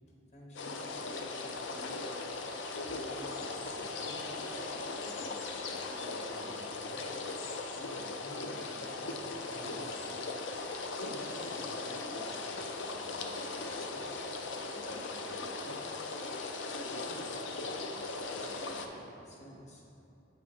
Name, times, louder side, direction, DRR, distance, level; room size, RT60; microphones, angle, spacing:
voice 1, 0.3-2.0 2.9-4.6 5.0-7.2 7.8-10.2 11.1-14.3 14.7-16.1 16.8-19.8, equal, 35° left, -2 dB, 1.0 m, -53 dB
sound 1, 0.6-18.9, left 3 dB, 65° left, 0.5 m, -38 dB
7.8 x 3.3 x 4.9 m, 2.7 s
head